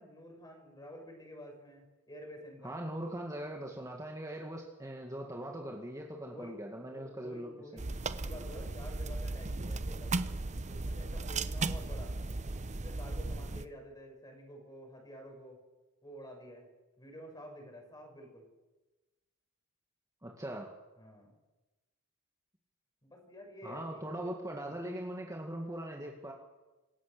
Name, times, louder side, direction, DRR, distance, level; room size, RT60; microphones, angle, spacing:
voice 1, 0.0-2.8 6.2-10.1 10.6-12.2 12.7-15.6 16.0-16.7 17.0-18.5 21.0-21.3 23.0-24.3 24.6-24.8, equal, 20° left, 2 dB, 6.3 m, -50 dB
voice 2, 2.6-7.8 20.2-20.7 23.6-26.3, right 1 dB, 15° right, 0 dB, 2.0 m, -41 dB
sound 1, 7.8-13.6, right 3 dB, 30° right, 0.8 m, -36 dB
27.0 x 16.5 x 6.9 m, 1.1 s
head